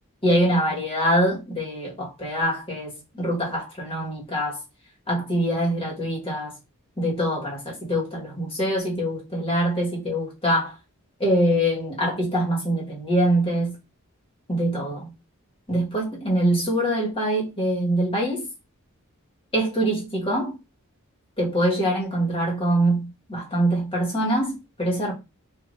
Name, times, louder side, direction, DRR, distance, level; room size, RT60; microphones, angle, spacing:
voice 1, 0.2-4.6 5.1-6.5 7.0-10.7 11.2-13.8 14.5-15.1 15.7-18.5 19.5-20.6 21.4-25.1, right 1 dB, 25° left, 1.7 m, -24 dB
5.2 x 2.9 x 2.7 m
head